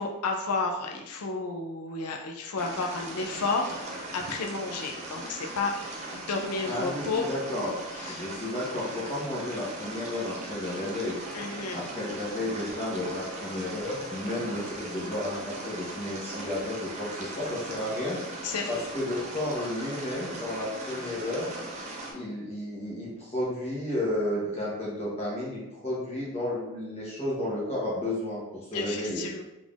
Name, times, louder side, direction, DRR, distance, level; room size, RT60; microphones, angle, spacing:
voice 1, 0.0-7.3 8.0-8.2 11.3-11.8 18.4-18.7 28.7-29.4, left 3 dB, 85° left, 1 dB, 0.5 m, -32 dB
sound 1, 2.6-22.1, right 2 dB, 30° right, 0.6 m, -39 dB
voice 2, 6.7-7.8 8.1-11.1 11.7-18.2 18.7-21.6 22.1-29.3, left 1 dB, 30° left, -6 dB, 0.9 m, -32 dB
3.7 x 3.5 x 2.4 m, 0.96 s
head